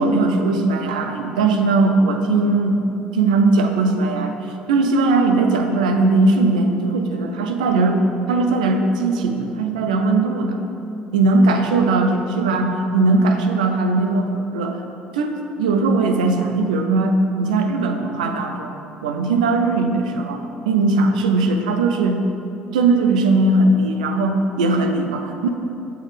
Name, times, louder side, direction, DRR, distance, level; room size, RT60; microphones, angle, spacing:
voice 1, 0.0-4.4 4.7-8.0 8.3-10.6 11.1-14.8 15.1-18.7 19.0-22.2 22.7-25.5, right 3 dB, 85° right, 5 dB, 0.6 m, -19 dB
7.8 x 4.5 x 4.9 m, 2.9 s
hypercardioid pair, 60°, 4 cm